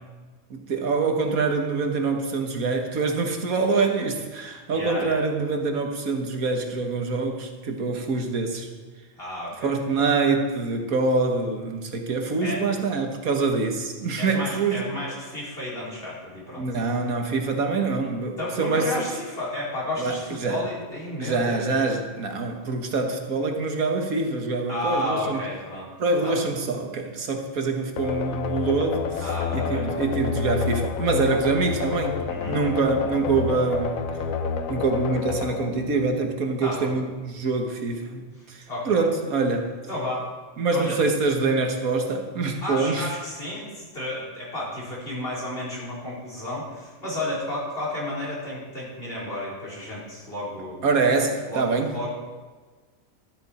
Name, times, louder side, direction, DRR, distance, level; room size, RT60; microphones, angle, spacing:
voice 1, 0.5-8.7 9.6-14.9 16.6-18.9 20.0-20.6 21.2-25.4 26.0-34.1 34.7-39.8 40.6-43.1 50.8-51.9, right 3 dB, 85° right, 4 dB, 1.8 m, -25 dB
voice 2, 4.7-5.2 9.2-9.7 12.4-12.7 14.2-16.7 18.4-21.8 24.7-25.9 26.2-26.5 29.2-29.8 32.3-32.6 36.6-36.9 38.7-39.0 39.9-40.3 40.7-41.0 42.6-50.8 51.5-52.2, left 1 dB, 45° left, -6 dB, 4.3 m, -32 dB
sound 1, 28.0-36.6, left 5 dB, 75° left, 1.3 m, -29 dB
13.0 x 11.5 x 4.3 m, 1.4 s
omnidirectional pair, 1.4 m